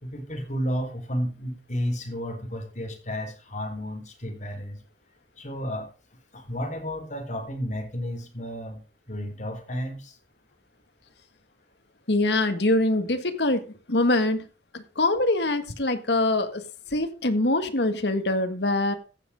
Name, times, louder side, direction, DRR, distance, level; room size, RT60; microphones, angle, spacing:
voice 1, 0.0-4.8 5.4-5.9 6.3-8.8 9.1-10.2, equal, 45° left, 3 dB, 4.1 m, -32 dB
voice 2, 12.1-14.5 14.7-18.9, left 2 dB, 70° left, 9 dB, 1.7 m, -24 dB
15.0 x 7.7 x 3.7 m, 0.34 s
head